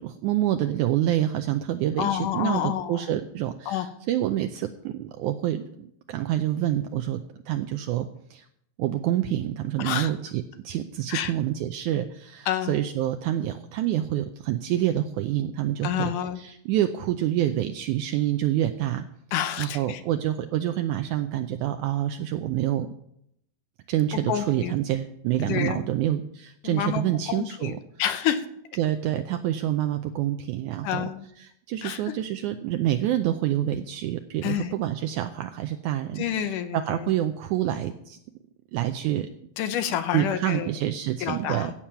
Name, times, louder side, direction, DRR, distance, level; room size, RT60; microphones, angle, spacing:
voice 1, 0.0-8.5 8.8-19.1 19.6-22.9 23.9-27.8 28.8-31.1 31.4-36.2 36.7-38.2 38.7-39.3 40.1-41.7, right 12 dB, 85° right, 7 dB, 1.8 m, -27 dB
voice 2, 2.0-3.1 3.7-3.9 9.8-10.1 11.1-11.3 12.5-12.8 15.8-16.4 19.3-20.0 24.1-24.7 25.4-25.8 26.6-27.7 28.0-28.5 30.8-31.2 31.8-32.0 34.4-34.7 36.2-37.1 39.6-40.7 41.2-41.7, left 10 dB, 75° left, 10 dB, 2.2 m, -28 dB
15.5 x 7.4 x 5.7 m, 0.74 s
omnidirectional pair, 4.0 m